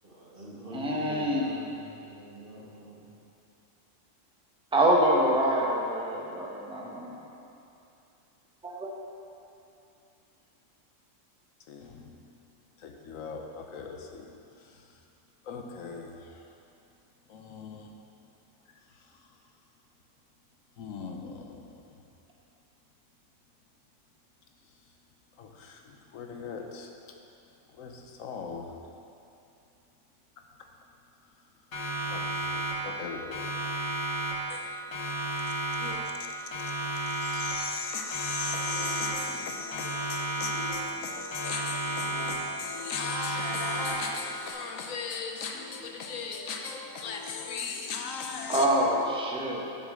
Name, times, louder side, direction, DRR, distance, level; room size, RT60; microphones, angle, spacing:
voice 1, 0.0-3.1, equal, 45° right, -4 dB, 1.5 m, -44 dB
voice 2, 0.7-1.5 4.7-7.3 48.5-49.7, right 1 dB, 5° right, -2 dB, 0.8 m, -25 dB
voice 3, 11.7-12.2 12.8-14.3 14.5-15.0 15.4-16.5 17.3-17.9 18.7-19.3 20.8-22.0 25.4-26.9 27.7-28.7 30.6-30.7 32.1-33.4 34.5-34.8 35.8-48.7, left 5 dB, 90° left, 3 dB, 1.2 m, -38 dB
Siren, 31.7-33.0 33.3-34.6 34.9-36.2 36.5-37.8 38.1-39.4 39.7-41.0 41.3-42.6 42.9-44.2, right 1 dB, 70° left, 1.7 m, -32 dB
7.2 x 6.4 x 6.3 m, 2.7 s
omnidirectional pair, 1.3 m